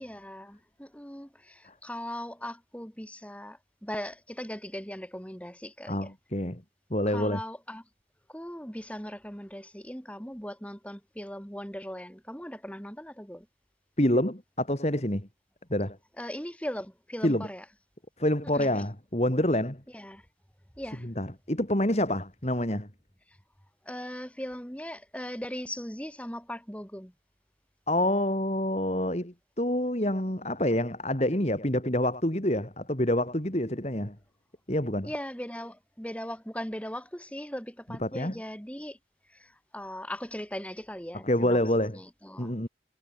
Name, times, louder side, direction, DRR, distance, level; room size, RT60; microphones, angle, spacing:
voice 1, 0.0-6.1 7.1-7.8 8.3-13.5 16.2-17.6 18.5-18.7 19.9-20.3 20.8-21.1 23.3-23.4 23.8-27.1 35.0-39.0 39.3-41.6 41.9-42.5, equal, 5° left, 7.0 m, -39 dB
voice 2, 5.9-6.6 6.9-7.4 14.0-15.3 15.7-16.0 17.2-17.5 18.2-19.8 21.0-22.9 27.9-34.2 34.7-35.1 38.0-38.3 41.2-42.0 42.4-42.7, left 1 dB, 35° left, 3.0 m, -27 dB
head